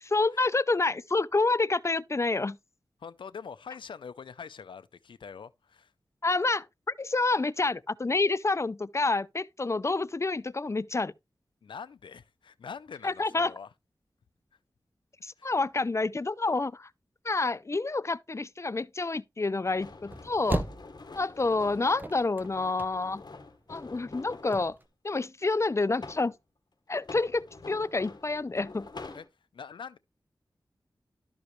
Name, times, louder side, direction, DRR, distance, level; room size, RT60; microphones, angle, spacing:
voice 1, 0.0-2.6 6.2-11.1 13.0-13.5 15.2-16.9 17.2-20.6 21.1-23.2 23.7-24.8 25.0-26.3 26.9-28.9, left 3 dB, 35° left, 0.5 m, -28 dB
voice 2, 3.0-5.9 11.6-13.7 15.4-15.5 29.1-29.2 29.5-30.0, left 6 dB, 85° left, 0.5 m, -44 dB
sound 1, 19.6-24.7 25.5-26.3 26.9-29.3, left 3 dB, 60° left, 1.4 m, -46 dB
sound 2, 20.0-21.4 21.7-23.3 23.5-23.6 23.8-23.9 24.3-24.8, right 1 dB, 25° right, 0.8 m, -35 dB
12.5 x 4.9 x 3.1 m
cardioid pair, 45°, 8 cm